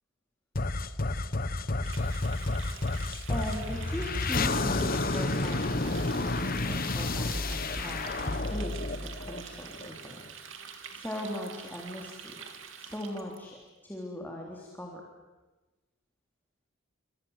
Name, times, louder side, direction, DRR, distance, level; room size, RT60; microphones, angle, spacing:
sound 1, 0.5-9.9, left 2 dB, 45° left, 1.1 m, -30 dB
Water tap faucet, 1.8-13.4, right 7 dB, 70° right, 2.7 m, -46 dB
sound 2, 3.1-9.1, right 1 dB, 45° right, 2.1 m, -45 dB
voice 1, 3.3-10.2 10.6-12.4 12.8-13.6 13.8-15.0, left 1 dB, 10° left, -1 dB, 3.4 m, -40 dB
28.5 x 25.5 x 8.1 m, 1.2 s
head